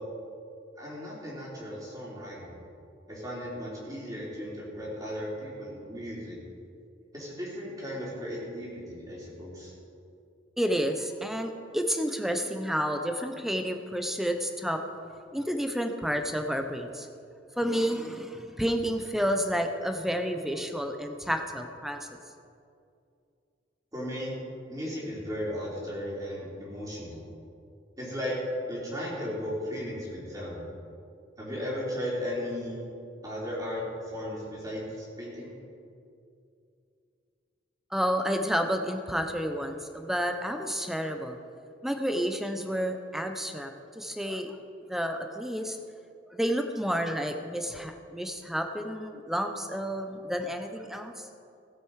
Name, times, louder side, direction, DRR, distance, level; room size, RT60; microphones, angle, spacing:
voice 1, 0.8-2.6 3.1-6.4 7.1-9.7 23.9-24.3 24.7-27.3 28.0-28.3 28.7-30.6 31.4-32.8 33.2-35.5, equal, 20° right, -6 dB, 3.5 m, -36 dB
voice 2, 10.6-14.8 15.3-17.1 17.6-22.1 37.9-41.4 41.8-44.6 44.9-45.8 46.3-51.3, equal, ahead, 6 dB, 0.8 m, -30 dB
17.0 x 8.2 x 4.8 m, 2.5 s
head